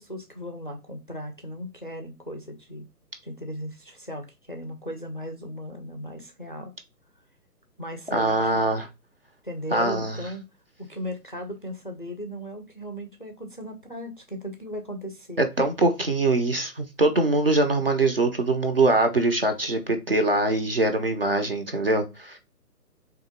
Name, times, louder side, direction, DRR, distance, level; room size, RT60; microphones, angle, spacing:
voice 1, 0.0-2.9 3.2-6.7 7.8-8.7 9.4-10.4 10.8-15.4, equal, 35° left, 0.4 m, -37 dB
voice 2, 8.1-8.9 9.7-10.2 15.4-22.4, right 2 dB, 40° right, 0.5 m, -23 dB
3.6 x 2.9 x 3.5 m
figure-of-eight pair, 145°, 49 cm